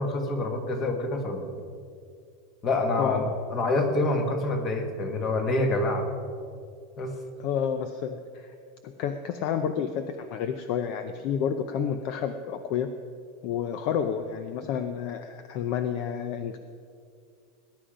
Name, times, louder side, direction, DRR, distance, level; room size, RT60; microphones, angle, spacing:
voice 1, 0.0-1.5 2.6-6.1 7.0-7.1, left 2 dB, 25° left, 5 dB, 1.4 m, -27 dB
voice 2, 3.0-3.3 7.4-8.5 8.8-12.9 13.4-16.6, left 8 dB, 40° left, 9 dB, 0.6 m, -30 dB
19.5 x 10.0 x 5.1 m, 2.3 s
supercardioid pair, 175°, 0 cm